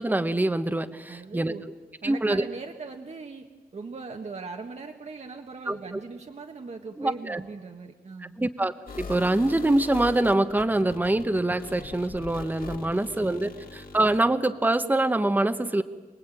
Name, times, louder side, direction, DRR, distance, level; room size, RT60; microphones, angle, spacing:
voice 1, 0.0-1.5 2.0-2.4 5.7-5.8 7.0-7.4 8.2-15.8, right 2 dB, 10° right, 8 dB, 0.9 m, -25 dB
voice 2, 1.1-1.6 2.0-8.4 12.8-13.1 13.4-13.5, right 4 dB, 45° right, 3 dB, 1.4 m, -40 dB
sound 1, 8.9-14.2, left 4 dB, 65° left, 3.4 m, -41 dB
28.0 x 20.0 x 9.0 m, 1.3 s
wide cardioid pair, 165°, 16 cm